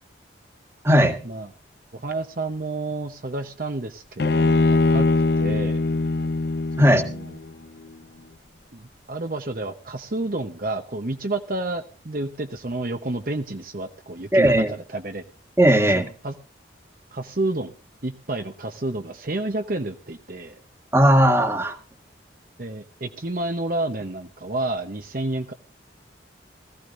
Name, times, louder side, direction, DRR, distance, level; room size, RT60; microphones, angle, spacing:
voice 1, 0.8-1.2 6.8-7.0 14.3-14.7 15.6-16.1 20.9-21.8, equal, 15° right, 6 dB, 1.6 m, -17 dB
voice 2, 1.9-5.1 5.4-5.8 6.8-7.4 8.7-15.2 15.8-16.3 17.1-17.7 18.0-20.6 22.6-25.5, right 2 dB, 45° right, 6 dB, 0.9 m, -30 dB
Bowed string instrument, 4.2-7.5, left 3 dB, 55° left, 0.6 m, -21 dB
19.0 x 15.5 x 2.6 m, 0.35 s
head